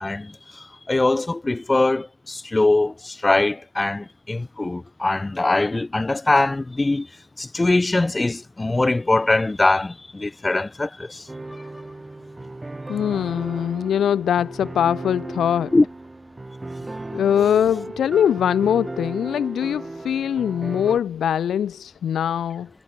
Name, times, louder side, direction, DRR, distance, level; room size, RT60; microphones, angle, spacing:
voice 1, 0.0-11.3 11.6-11.7 15.7-15.8, left 2 dB, 15° left, 0.5 m, -22 dB
sound 1, 11.3-21.0, right 2 dB, 15° right, 3.2 m, -35 dB
voice 2, 12.9-15.8 17.1-22.7, left 9 dB, 60° left, 1.5 m, -22 dB
cardioid pair, 90°, 0 cm